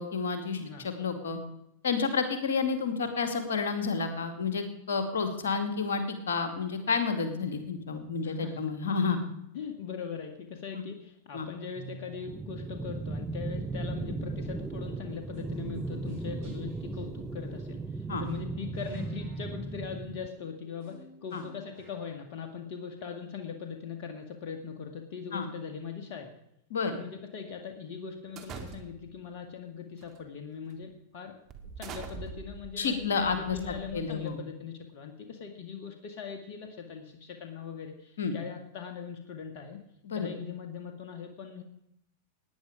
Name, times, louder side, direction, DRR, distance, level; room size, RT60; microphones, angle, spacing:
voice 1, 0.0-1.4 1.8-9.2 10.7-10.8 11.3-11.5 18.1-18.2 21.3-21.4 25.3-25.5 26.7-26.9 32.8-33.6 33.9-34.4 38.2-38.3 40.0-40.3, left 5 dB, 75° left, 8 dB, 2.4 m, -30 dB
voice 2, 8.2-8.6 8.9-9.0 9.5-26.3 26.9-31.4 31.8-39.8 40.1-41.6, left 7 dB, 55° left, 5 dB, 1.9 m, -41 dB
sound 1, 11.7-12.5 14.2-14.6 15.3-15.4 15.8-15.9 16.0-22.2, right 3 dB, 60° right, 7.2 m, -51 dB
sound 2, 12.3-20.3, right 3 dB, 10° right, 0.8 m, -36 dB
sound 3, 28.4-29.2 30.0-30.2 30.7-30.8 31.5-34.4, right 5 dB, 40° right, 2.1 m, -44 dB
18.0 x 10.0 x 5.0 m, 0.79 s
hypercardioid pair, 95°, 0 cm